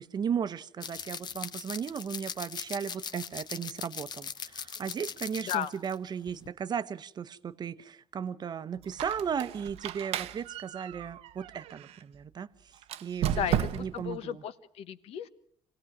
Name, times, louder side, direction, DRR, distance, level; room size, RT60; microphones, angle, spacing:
voice 1, 0.0-12.7 13.0-14.4, right 7 dB, 40° right, 0.8 m, -36 dB
sound 1, 0.8-6.0 6.3-6.5, left 7 dB, 45° left, 0.9 m, -40 dB
Squeak, 8.8-12.0 12.8-14.1, right 11 dB, 80° right, 0.7 m, -34 dB
voice 2, 13.3-15.3, left 9 dB, 75° left, 1.1 m, -34 dB
25.5 x 17.5 x 6.0 m
cardioid pair, 110°, 10 cm